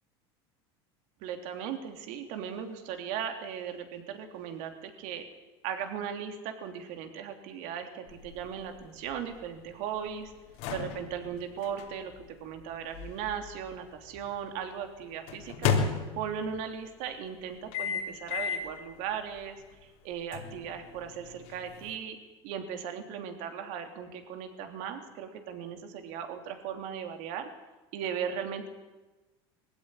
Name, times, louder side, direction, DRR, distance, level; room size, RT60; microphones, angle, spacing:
voice 1, 1.2-5.2 5.6-10.3 10.7-12.1 12.4-15.7 16.1-22.2 22.4-27.5 27.9-28.7, right 8 dB, 65° right, 6 dB, 3.3 m, -37 dB
sound 1, 8.1-14.2 15.3-16.6 17.7-18.8 19.2-19.4 20.3-21.9, left 6 dB, 70° left, 3.6 m, -35 dB
20.5 x 15.5 x 10.0 m, 1.2 s
hypercardioid pair, 95°, 14 cm